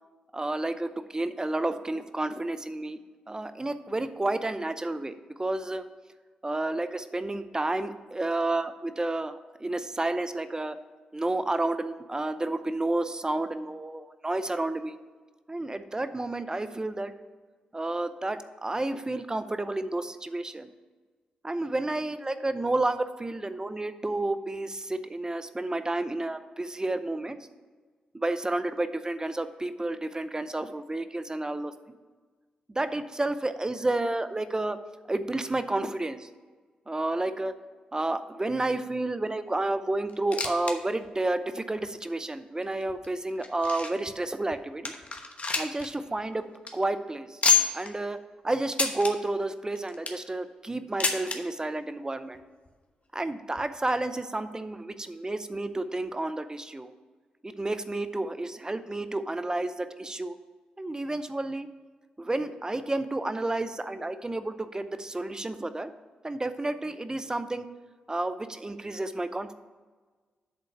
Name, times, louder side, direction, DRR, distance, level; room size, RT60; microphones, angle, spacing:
voice 1, 0.3-3.0 3.3-5.1 5.4-5.8 6.4-10.8 11.1-14.9 15.5-17.1 17.7-20.7 21.4-27.4 28.1-31.7 32.8-34.8 35.1-36.3 36.9-37.5 37.9-44.9 45.6-46.4 46.7-47.4 47.7-48.2 48.4-52.4 53.1-56.9 57.4-60.4 60.8-61.7 62.2-65.9 66.2-67.7 68.1-69.5, right 2 dB, 20° right, 11 dB, 0.6 m, -30 dB
sound 1, 40.1-40.8 41.0-41.1 41.8-41.9 42.6-44.1 44.5-44.6 44.8-45.9 46.2-46.3 46.5-46.7 47.4-47.9 48.7-49.1 49.7-50.3 51.0-51.4 52.3-52.4 52.6-52.7 53.6-53.7, left 5 dB, 45° left, 1.1 m, -27 dB
8.1 x 3.8 x 6.6 m, 1.4 s
hypercardioid pair, 40°, 3 cm